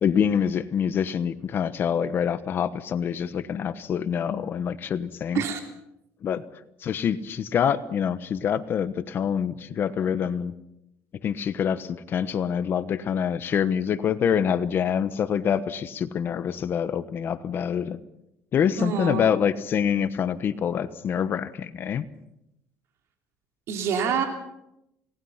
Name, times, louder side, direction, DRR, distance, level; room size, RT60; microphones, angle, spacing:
voice 1, 0.0-5.4 6.2-6.4 6.8-10.5 11.2-18.0 18.5-22.0, left 8 dB, 40° left, 12 dB, 1.1 m, -26 dB
voice 2, 18.8-19.3 23.7-24.3, right 7 dB, 60° right, 3 dB, 3.5 m, -26 dB
29.0 x 19.0 x 5.8 m, 0.83 s
cardioid pair, 130°, 5 cm